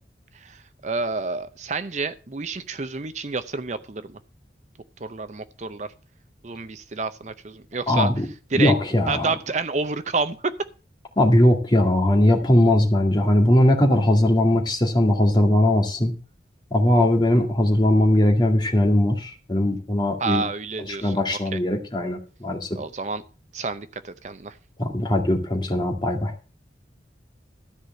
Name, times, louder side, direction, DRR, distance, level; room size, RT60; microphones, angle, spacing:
voice 1, 0.4-4.2 5.0-5.9 6.4-8.1 8.5-8.7 9.1-10.5 20.2-21.6 22.8-23.2 23.5-24.6, right 4 dB, 40° right, 11 dB, 0.6 m, -29 dB
voice 2, 7.9-8.3 8.5-9.3 11.2-16.1 16.7-20.4 21.0-22.7 24.8-26.3, left 1 dB, 25° left, 3 dB, 2.1 m, -19 dB
13.5 x 4.9 x 7.6 m, 0.35 s
head